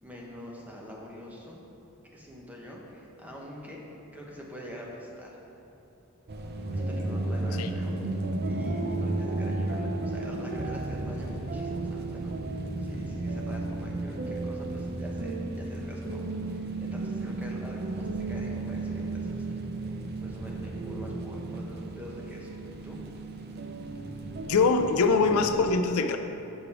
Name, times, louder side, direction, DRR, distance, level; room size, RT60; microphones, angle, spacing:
voice 1, 0.0-1.6 2.1-3.8 4.1-5.4 6.7-20.0 20.2-22.6 22.8-23.0, left 1 dB, 5° right, -3 dB, 0.9 m, -44 dB
sound 1, 6.3-25.5, right 2 dB, 45° right, 0.5 m, -33 dB
voice 2, 24.5-26.2, left 4 dB, 90° left, 8 dB, 0.4 m, -23 dB
7.1 x 5.1 x 4.7 m, 3.0 s
head